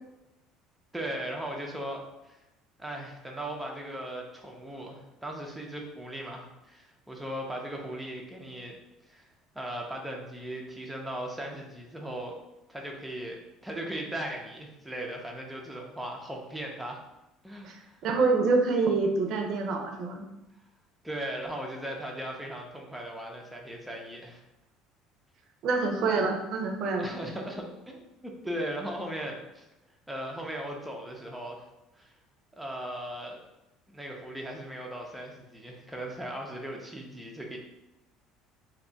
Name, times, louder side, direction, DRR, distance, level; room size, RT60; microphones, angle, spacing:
voice 1, 0.9-2.4 2.8-8.8 9.1-9.3 9.5-12.4 12.7-17.0 17.4-18.0 21.0-24.4 27.0-29.7 30.1-31.6 32.0-32.1 32.5-33.4 33.9-37.6, right 1 dB, 5° right, -1 dB, 0.6 m, -38 dB
voice 2, 17.6-20.2 25.6-27.1, right 4 dB, 60° right, 3 dB, 0.6 m, -26 dB
2.6 x 2.3 x 3.9 m, 0.95 s
cardioid pair, 115°, 0 cm